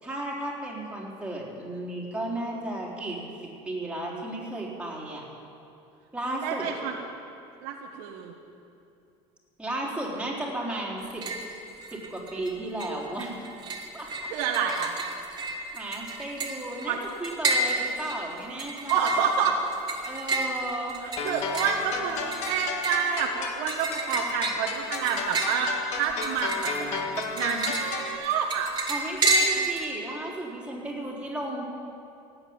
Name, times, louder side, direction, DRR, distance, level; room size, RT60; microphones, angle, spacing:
voice 1, 0.0-3.3 3.7-5.3 6.1-6.7 9.6-11.3 11.9-13.4 13.9-14.1 15.7-19.1 20.0-21.0 28.9-31.7, right 1 dB, 10° right, -3 dB, 3.9 m, -34 dB
voice 2, 6.4-7.0 7.6-8.3 14.3-14.9 16.8-17.0 18.9-19.6 21.0-28.7 29.6-29.7, right 6 dB, 80° right, 0 dB, 1.5 m, -28 dB
sound 1, 11.0-11.5 11.8-12.5 12.8-29.8, right 2 dB, 35° right, 2.7 m, -31 dB
sound 2, 21.2-28.2, left 5 dB, 60° left, 1.9 m, -34 dB
18.0 x 8.7 x 8.8 m, 2.6 s
supercardioid pair, 110°, 13 cm